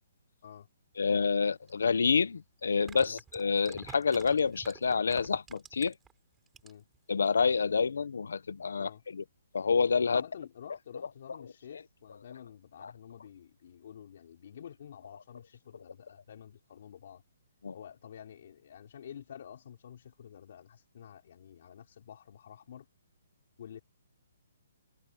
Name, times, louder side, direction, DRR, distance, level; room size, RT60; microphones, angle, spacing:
voice 1, 0.9-5.9 7.1-9.2 9.5-10.2 11.0-11.8 12.1-12.2 12.8-12.9 15.7-15.8 17.6-17.7, left 5 dB, 80° left, 0.9 m, -28 dB
sound 1, 1.7-1.8 2.7-6.1 6.5-7.0 7.3-7.4, right 7 dB, 5° right, 7.6 m, -50 dB
voice 2, 10.0-17.2 17.7-22.9 23.6-23.8, left 9 dB, 40° left, 5.2 m, -50 dB
hypercardioid pair, 180°, 0 cm